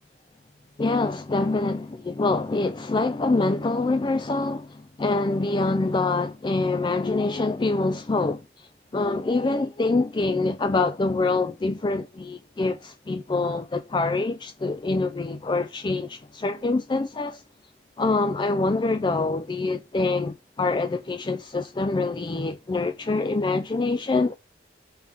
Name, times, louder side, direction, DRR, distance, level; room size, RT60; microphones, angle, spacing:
voice 1, 0.8-17.4 18.0-24.3, left 3 dB, 25° left, 0.4 m, -25 dB
5.6 x 5.5 x 4.9 m
head